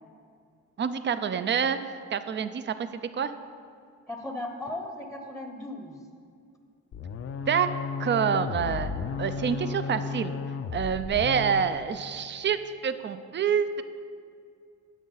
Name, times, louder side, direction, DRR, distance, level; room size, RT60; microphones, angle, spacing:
voice 1, 0.8-1.8 2.1-3.3 7.5-7.7 8.0-10.3 10.7-12.6 12.8-13.8, right 7 dB, 40° right, 11 dB, 0.5 m, -27 dB
voice 2, 4.1-6.0 11.2-11.3, left 1 dB, ahead, 4 dB, 0.9 m, -37 dB
sound 1, 6.9-11.8, left 5 dB, 50° left, 0.5 m, -34 dB
11.0 x 7.4 x 4.0 m, 2.4 s
cardioid pair, 90°, 30 cm